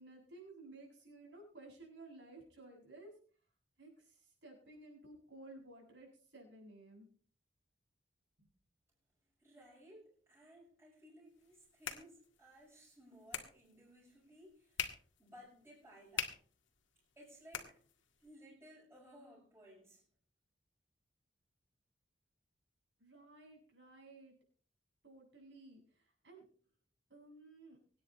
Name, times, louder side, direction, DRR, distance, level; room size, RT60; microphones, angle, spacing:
voice 1, 0.0-3.1 3.8-7.1 8.4-8.5 23.0-24.3 25.0-26.4 27.1-27.8, right 2 dB, 70° right, -1 dB, 7.8 m, -56 dB
voice 2, 9.4-14.8 15.2-16.3 17.1-17.8 18.2-20.0, equal, 15° right, -8 dB, 6.9 m, -59 dB
sound 1, 11.3-18.3, left 8 dB, 85° left, 1.9 m, -47 dB
25.0 x 9.7 x 3.2 m, 0.43 s
head